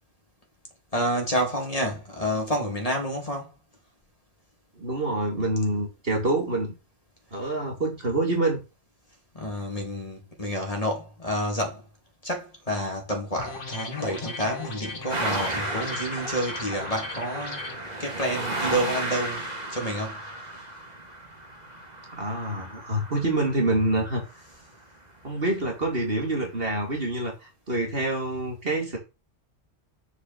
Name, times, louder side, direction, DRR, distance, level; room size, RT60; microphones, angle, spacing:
voice 1, 0.9-3.5 9.3-11.9 12.2-17.7 18.0-20.2, equal, 30° left, 2.6 m, -29 dB
voice 2, 4.8-6.7 7.3-8.6 22.2-24.2 25.2-29.0, right 2 dB, 50° right, 2.8 m, -26 dB
sound 1, 13.4-17.8, left 3 dB, 45° left, 1.6 m, -38 dB
sound 2, 15.1-24.4 25.6-25.7 26.6-26.7, right 1 dB, 35° right, 2.1 m, -34 dB
6.9 x 4.9 x 7.0 m
omnidirectional pair, 1.2 m